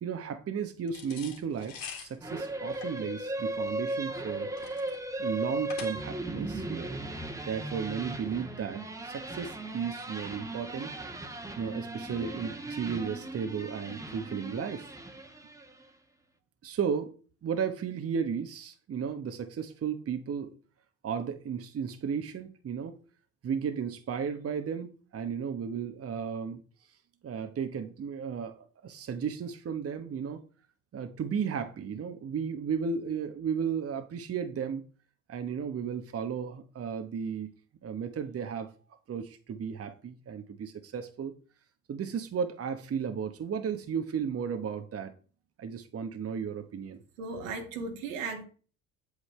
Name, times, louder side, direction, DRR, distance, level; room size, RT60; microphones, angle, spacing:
voice 1, 0.0-4.5 5.2-6.9 7.4-10.9 11.6-14.9 16.6-17.1 17.4-20.5 21.0-23.0 23.4-26.6 27.2-30.4 30.9-34.8 35.3-37.5 37.8-38.7 39.1-41.3 41.9-45.1 45.6-47.0, right 7 dB, 35° right, 1.2 m, -34 dB
sound 1, 0.9-6.3, left 7 dB, 65° left, 2.6 m, -46 dB
sound 2, 2.2-15.8, right 2 dB, 10° right, 1.5 m, -37 dB
voice 2, 47.2-48.4, right 4 dB, 80° right, 2.1 m, -36 dB
8.2 x 8.1 x 3.3 m
hypercardioid pair, 65°, 38 cm